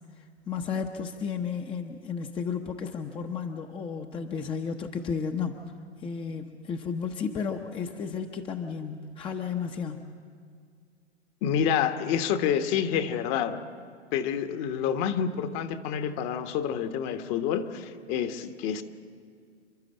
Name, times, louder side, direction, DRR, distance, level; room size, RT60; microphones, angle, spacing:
voice 1, 0.5-5.6 6.0-10.1, left 6 dB, 15° left, 4 dB, 0.9 m, -33 dB
voice 2, 11.4-13.6 14.1-18.8, left 8 dB, 35° left, 8 dB, 1.3 m, -28 dB
28.5 x 11.5 x 8.8 m, 2.1 s
figure-of-eight pair, 110°, 34 cm